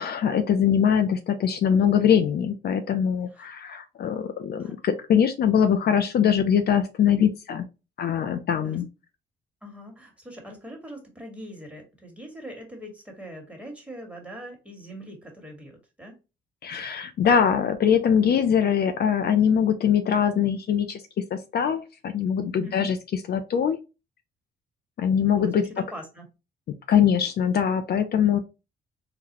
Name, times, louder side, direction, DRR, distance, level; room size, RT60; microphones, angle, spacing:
voice 1, 0.0-7.7 8.0-8.9 16.6-21.0 21.3-23.8 25.0-25.6 26.9-28.4, left 8 dB, 55° left, 8 dB, 0.5 m, -22 dB
voice 2, 9.6-16.1 22.6-22.9 25.4-26.2, equal, 5° right, 2 dB, 1.4 m, -42 dB
3.9 x 2.1 x 2.9 m, 0.28 s
cardioid pair, 90°, 20 cm